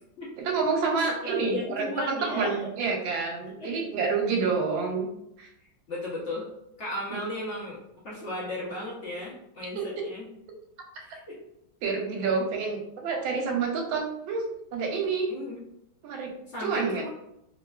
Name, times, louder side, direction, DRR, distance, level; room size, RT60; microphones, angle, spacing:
voice 1, 0.4-5.1 5.4-5.5 9.8-9.9 11.8-14.4 14.7-15.3 16.0-16.3 16.6-17.0, right 4 dB, 80° right, 2 dB, 1.4 m, -28 dB
voice 2, 1.2-2.6 3.6-3.9 5.9-6.4 6.8-10.3 11.0-11.4 15.3-15.6 16.5-17.1, left 1 dB, 55° left, -7 dB, 0.7 m, -35 dB
3.3 x 2.3 x 2.2 m, 0.80 s
omnidirectional pair, 2.1 m